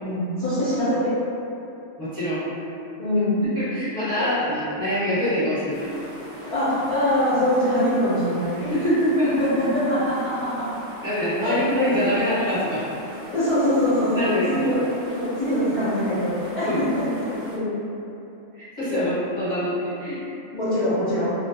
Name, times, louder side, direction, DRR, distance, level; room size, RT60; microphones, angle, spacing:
voice 1, 0.0-1.1 3.0-3.4 6.4-8.7 9.2-10.7 11.4-11.5 13.3-17.8 18.9-19.0 20.5-21.3, left 1 dB, 40° left, -14 dB, 0.4 m, -23 dB
voice 2, 2.0-2.5 3.5-5.9 8.7-9.4 11.0-12.8 14.1-14.7 16.6-16.8 18.5-20.2, equal, 15° right, -13 dB, 1.0 m, -24 dB
sound 1, 5.7-17.6, right 1 dB, 70° right, 0.4 m, -42 dB
2.4 x 2.2 x 2.8 m, 2.8 s
omnidirectional pair, 1.4 m